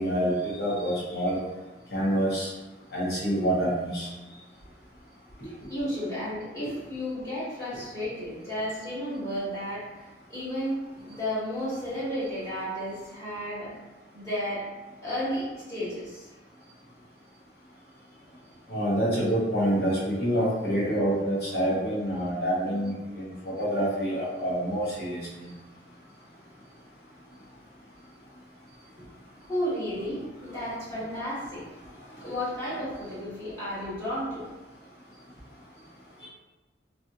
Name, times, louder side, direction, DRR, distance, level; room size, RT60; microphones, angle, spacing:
voice 1, 0.0-1.4 1.9-2.5 2.9-4.1 18.7-25.5 32.1-32.3 36.2-36.3, equal, 60° left, -7 dB, 1.2 m, -27 dB
voice 2, 5.4-10.0 10.3-10.8 11.0-13.7 14.1-14.7 15.0-16.3 29.5-31.6 32.2-34.5, equal, 15° left, -11 dB, 1.5 m, -33 dB
3.3 x 2.6 x 2.6 m, 1.2 s
head